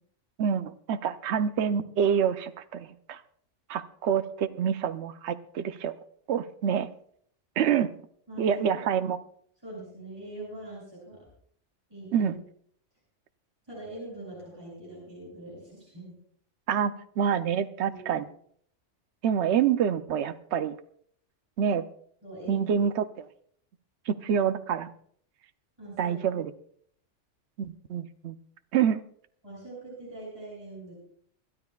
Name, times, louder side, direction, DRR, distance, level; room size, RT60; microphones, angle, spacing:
voice 1, 0.4-3.2 3.7-6.0 6.3-6.9 7.6-7.9 8.4-9.2 12.1-12.4 16.7-18.2 19.2-20.8 21.6-21.8 22.5-23.3 24.1-24.9 26.0-26.5 27.6-28.4 28.7-29.0, right 8 dB, 65° right, 10 dB, 1.0 m, -27 dB
voice 2, 8.3-8.9 9.6-11.3 11.9-12.3 13.7-16.2 17.9-18.2 22.2-22.7 25.8-26.2 29.4-30.9, right 1 dB, 20° right, -6 dB, 7.7 m, -42 dB
26.0 x 13.0 x 2.4 m, 0.62 s
omnidirectional pair, 1.3 m